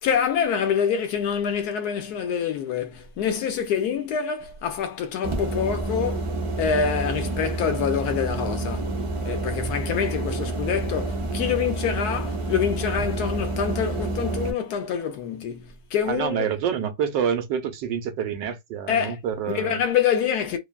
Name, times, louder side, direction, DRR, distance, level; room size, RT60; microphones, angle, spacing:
voice 1, 0.0-6.3 6.6-8.9 9.2-16.5 18.9-19.2 19.5-20.6, left 7 dB, 70° left, 1.1 m, -26 dB
sound 1, 5.2-14.5, right 2 dB, 40° right, 0.4 m, -28 dB
voice 2, 16.1-19.8, right 8 dB, 85° right, 1.4 m, -27 dB
3.3 x 2.1 x 2.3 m
omnidirectional pair, 1.9 m